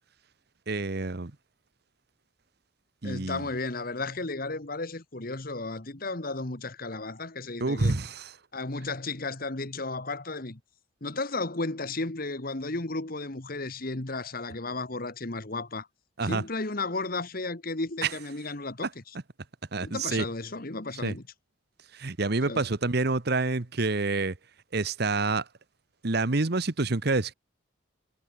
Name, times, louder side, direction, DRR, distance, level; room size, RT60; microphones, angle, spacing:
voice 1, 0.7-1.3 3.0-3.5 7.6-8.3 16.2-16.4 18.8-18.9 19.7-20.2 21.0-21.1 21.9-24.4 24.7-25.4 26.0-27.3, right 3 dB, 55° right, 1.1 m, -27 dB
voice 2, 3.0-8.0 8.5-10.6 11.0-15.9 16.2-19.1 19.8-21.2 22.5-22.7, left 3 dB, 45° left, 1.6 m, -34 dB
head